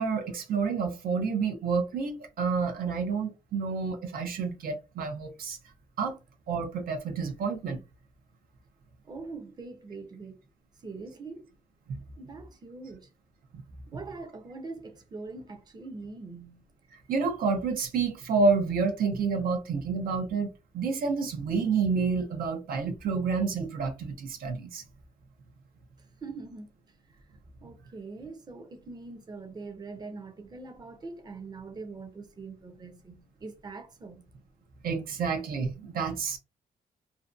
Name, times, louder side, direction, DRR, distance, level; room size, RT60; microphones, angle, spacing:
voice 1, 0.0-5.6 6.0-6.2 6.5-7.8 11.9-12.0 17.1-20.5 20.7-24.8 34.8-36.4, right 5 dB, 80° right, 0.6 m, -29 dB
voice 2, 9.1-10.4 10.8-11.4 12.2-13.1 13.9-16.6 26.2-26.7 27.6-34.2, right 3 dB, 30° right, 0.5 m, -43 dB
2.6 x 2.1 x 2.4 m
cardioid pair, 115°, 15 cm